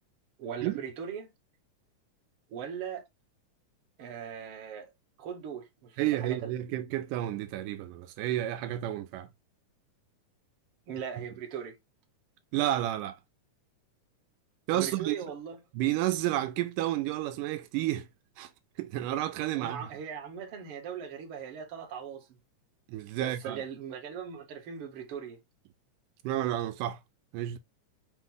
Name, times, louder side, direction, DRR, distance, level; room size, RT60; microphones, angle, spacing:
voice 1, 0.4-1.3 2.5-3.0 4.0-4.9 5.2-6.5 10.9-11.8 14.7-15.6 19.6-22.4 23.2-25.4, right 7 dB, 55° right, 1.8 m, -39 dB
voice 2, 6.0-9.3 11.2-11.3 12.5-13.2 14.7-15.2 15.7-18.1 18.4-18.5 18.8-19.9 22.9-23.6 26.2-27.0 27.3-27.6, right 14 dB, 85° right, 2.2 m, -31 dB
6.0 x 2.4 x 3.7 m
omnidirectional pair, 3.7 m